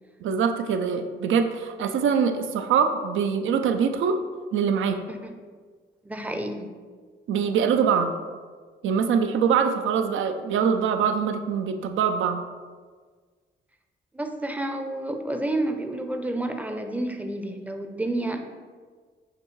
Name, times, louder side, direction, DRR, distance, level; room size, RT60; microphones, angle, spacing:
voice 1, 0.2-4.2 4.5-5.0 7.3-8.1 8.8-12.4, right 6 dB, 75° right, 7 dB, 0.4 m, -23 dB
voice 2, 6.0-6.7 14.1-18.5, right 1 dB, 5° right, 5 dB, 0.5 m, -30 dB
5.8 x 2.7 x 3.1 m, 1.5 s
cardioid pair, 65°, 20 cm